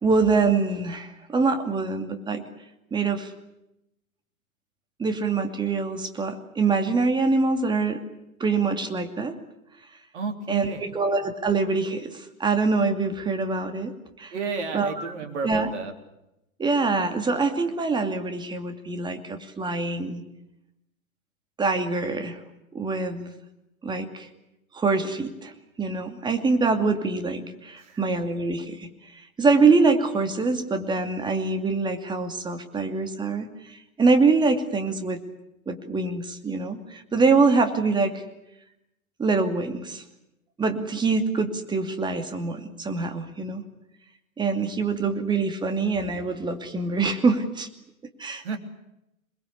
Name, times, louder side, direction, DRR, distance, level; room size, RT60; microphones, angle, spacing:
voice 1, 0.0-2.4 2.9-3.3 5.0-8.0 8.4-9.4 10.5-13.9 14.2-14.3 14.7-14.9 15.4-15.7 16.6-20.2 21.6-22.4 22.7-23.3 23.8-24.3 24.7-25.5 25.8-28.9 29.4-35.2 35.7-38.2 39.2-40.0 40.6-43.6 44.4-47.7 48.2-48.6, right 4 dB, 10° right, 7 dB, 2.6 m, -24 dB
voice 2, 10.1-11.0 14.3-15.9 27.7-28.0 48.4-48.6, right 4 dB, 55° right, 5 dB, 3.8 m, -32 dB
27.5 x 21.5 x 8.4 m, 0.88 s
figure-of-eight pair, 110°, 43 cm